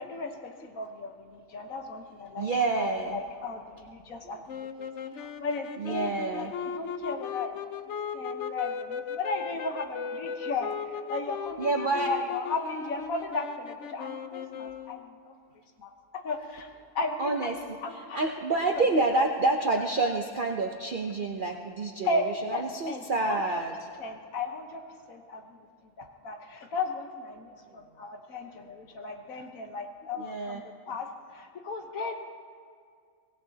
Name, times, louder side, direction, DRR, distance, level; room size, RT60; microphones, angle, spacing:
voice 1, 0.0-2.5 2.8-4.4 4.8-4.9 5.1-6.5 6.7-7.6 8.1-15.3 15.8-16.7 16.9-17.5 17.8-18.2 22.1-23.6 24.0-25.6 26.0-32.1, left 3 dB, 80° left, 4 dB, 1.5 m, -35 dB
voice 2, 2.4-3.2 5.8-6.5 11.6-12.1 17.2-23.7 30.1-30.6, right 3 dB, 45° right, 2 dB, 0.8 m, -28 dB
sound 1, 4.5-15.2, left 7 dB, 65° left, 0.9 m, -37 dB
24.0 x 17.5 x 2.8 m, 2.1 s
omnidirectional pair, 1.4 m